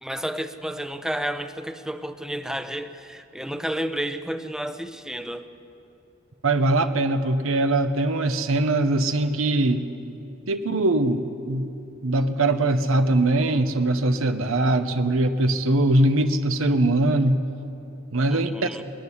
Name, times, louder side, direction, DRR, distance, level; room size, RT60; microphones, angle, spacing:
voice 1, 0.0-5.5 18.3-18.8, right 1 dB, 5° right, 10 dB, 0.7 m, -31 dB
voice 2, 6.4-9.9 10.5-11.7 12.0-17.4 18.1-18.7, right 2 dB, 85° right, 9 dB, 1.0 m, -22 dB
20.5 x 14.0 x 9.9 m, 2.8 s
head